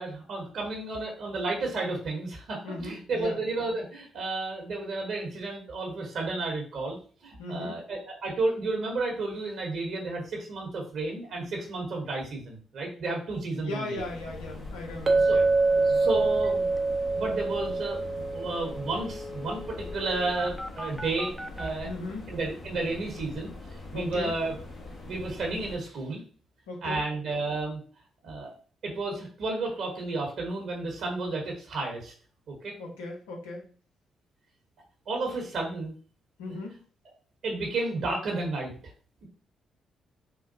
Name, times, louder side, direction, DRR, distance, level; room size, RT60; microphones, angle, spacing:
voice 1, 0.0-7.0 7.2-14.0 15.3-15.4 15.9-16.7 17.1-18.0 18.3-21.9 22.3-23.5 23.9-24.5 25.1-26.2 26.8-27.8 28.2-28.6 28.8-32.1 32.5-32.7 35.1-35.9 37.4-38.7, right 3 dB, 65° right, 0 dB, 1.0 m, -32 dB
voice 2, 2.6-3.4 7.4-7.8 13.6-16.0 21.8-22.3 23.9-24.3 26.7-27.0 32.8-33.7 36.4-36.8, left 2 dB, 85° left, -1 dB, 0.8 m, -38 dB
sound 1, 14.0-25.8, left 2 dB, 55° left, 1.2 m, -43 dB
Chink clink, 15.1-19.2, right 3 dB, 45° right, 0.6 m, -25 dB
sound 2, 16.4-16.5 16.8-16.9 17.1-21.7, left 2 dB, 10° left, 0.5 m, -41 dB
3.7 x 2.2 x 2.6 m, 0.41 s
hypercardioid pair, 45°, 0 cm